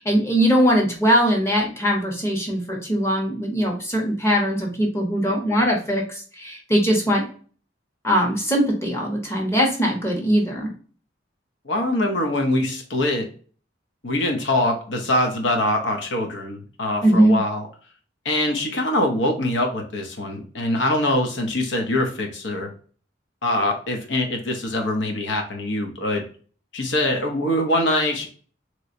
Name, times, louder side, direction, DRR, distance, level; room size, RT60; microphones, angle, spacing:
voice 1, 0.0-7.3 8.0-10.7 17.0-17.4, equal, 15° left, 0 dB, 0.9 m, -20 dB
voice 2, 11.7-13.3 14.0-17.6 18.2-22.7 23.4-26.2 26.7-28.3, left 1 dB, 75° left, 3 dB, 0.9 m, -23 dB
3.1 x 2.9 x 2.6 m, 0.42 s
head